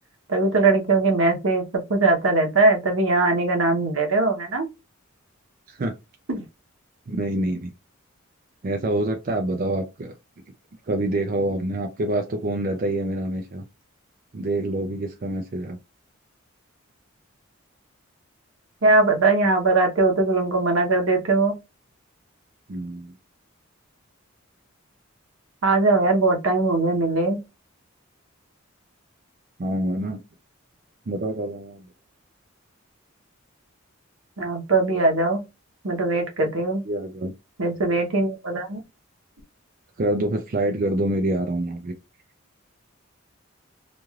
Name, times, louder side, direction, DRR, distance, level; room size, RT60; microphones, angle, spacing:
voice 1, 0.3-4.7 6.3-6.4 18.8-21.6 25.6-27.4 34.4-35.4 35.8-36.8 37.6-38.8, right 3 dB, 70° right, 0.9 m, -21 dB
voice 2, 7.1-7.7 8.6-10.1 10.8-13.6 14.3-15.8 22.7-23.1 29.6-30.2 31.1-31.9 36.9-37.3 40.0-41.9, right 1 dB, 40° right, 0.4 m, -26 dB
3.1 x 2.5 x 2.3 m
head